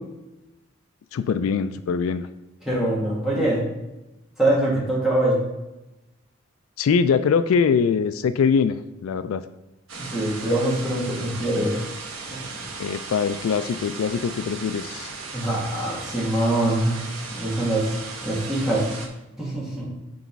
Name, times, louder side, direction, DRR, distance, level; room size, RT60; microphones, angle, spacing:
voice 1, 1.1-2.3 6.8-9.4 12.8-15.1, left 6 dB, 85° left, 12 dB, 0.3 m, -22 dB
voice 2, 2.7-3.6 4.4-5.4 10.0-11.8 12.3-12.4 15.3-17.0 17.3-18.0 18.2-18.9 19.4-19.9, right 1 dB, ahead, -7 dB, 1.9 m, -23 dB
sound 1, 9.9-19.1, right 4 dB, 80° right, 1.1 m, -36 dB
6.2 x 4.0 x 4.6 m, 0.99 s
head